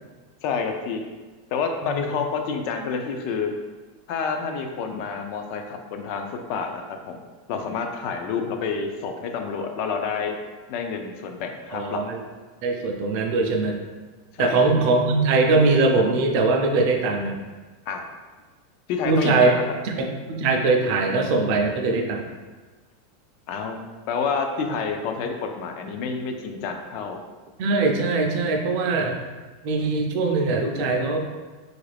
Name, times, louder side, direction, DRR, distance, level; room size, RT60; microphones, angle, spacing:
voice 1, 0.4-1.0 1.5-3.5 4.1-7.2 7.5-10.3 10.7-12.0 14.3-14.9 17.9-18.0 18.9-19.6 23.5-23.8 24.1-27.2, left 5 dB, 45° left, 4 dB, 0.4 m, -28 dB
voice 2, 11.7-12.2 12.6-13.8 14.4-17.4 19.0-19.5 19.8-22.2 27.6-29.2 29.6-31.2, right 3 dB, 45° right, 2 dB, 0.4 m, -21 dB
3.0 x 2.4 x 3.3 m, 1.3 s
supercardioid pair, 170°, 0 cm